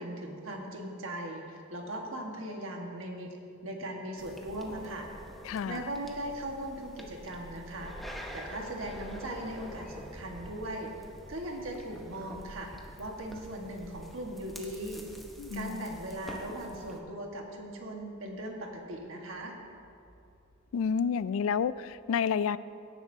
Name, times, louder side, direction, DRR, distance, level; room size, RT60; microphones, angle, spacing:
voice 1, 0.0-3.4 3.6-5.1 5.6-8.1 8.3-12.7 13.0-15.1 15.5-19.6, right 1 dB, 70° right, 1 dB, 1.5 m, -39 dB
sound 1, 4.2-17.0, equal, ahead, 0.8 m, -47 dB
voice 2, 5.4-5.9 15.4-15.9 20.7-22.6, left 6 dB, 75° left, 18 dB, 0.3 m, -30 dB
sound 2, 17.1-22.0, equal, 35° left, 2.5 m, -62 dB
17.0 x 9.9 x 2.7 m, 2.6 s
head